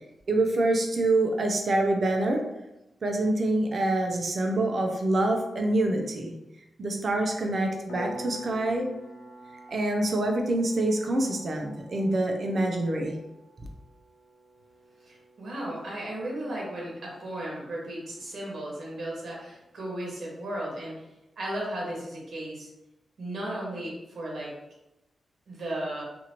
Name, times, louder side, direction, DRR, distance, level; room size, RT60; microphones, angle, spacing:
voice 1, 0.3-2.4 3.0-6.3 6.8-8.9 9.7-13.1, right 2 dB, 50° right, 2 dB, 0.5 m, -26 dB
Piano, 7.9-18.3, right 1 dB, 65° left, 0.9 m, -47 dB
voice 2, 15.0-21.0 21.4-22.7 23.2-24.5 25.5-26.0, right 1 dB, 70° right, -4 dB, 1.1 m, -35 dB
2.9 x 2.5 x 2.8 m, 0.94 s
wide cardioid pair, 110°, 0 cm